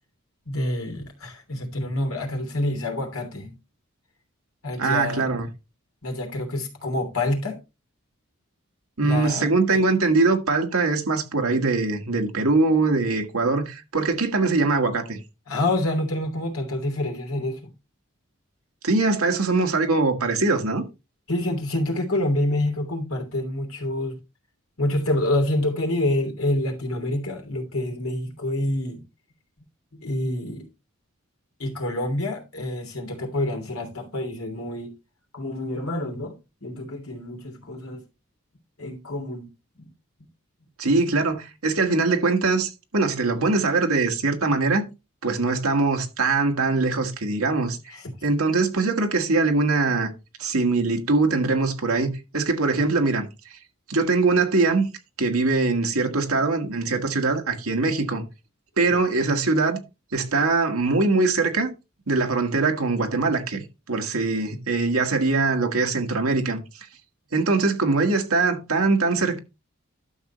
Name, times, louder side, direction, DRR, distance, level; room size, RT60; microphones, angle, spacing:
voice 1, 0.4-3.6 4.6-5.3 6.0-7.6 9.0-9.8 15.5-17.7 21.3-24.2 24.8-29.0 29.9-30.7 31.6-34.9 35.3-36.3 36.6-38.0 38.8-39.5 39.8-39.9 47.9-48.0 58.9-59.0, left 1 dB, 80° left, 3.0 m, -27 dB
voice 2, 4.8-5.5 9.0-15.2 18.8-20.8 40.8-44.8 45.2-47.8 48.2-50.1 50.4-53.6 53.9-54.9 55.2-58.2 58.8-59.8 60.1-61.7 62.1-66.9 67.3-69.4, right 3 dB, 80° right, 1.7 m, -22 dB
12.0 x 6.7 x 3.1 m
head